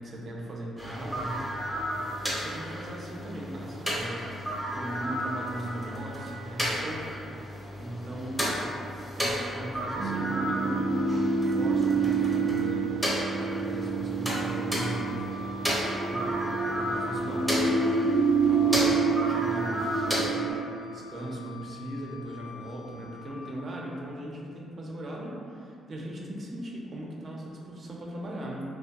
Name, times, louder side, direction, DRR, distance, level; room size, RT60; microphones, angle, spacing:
voice 1, 0.0-1.5 2.4-4.3 4.7-7.1 7.8-8.4 8.7-8.8 9.2-11.0 11.5-13.0 13.3-15.8 16.0-17.8 18.4-28.6, right 1 dB, 45° right, -2 dB, 0.4 m, -38 dB
sound 1, 0.8-20.3, equal, ahead, 0.6 m, -33 dB
sound 2, 10.0-20.5, right 4 dB, 85° left, 1.2 m, -28 dB
Wind instrument woodwind instrument, 14.9-23.5, left 2 dB, 65° left, 0.5 m, -46 dB
2.5 x 2.2 x 2.3 m, 2.5 s
cardioid pair, 90°, 0 cm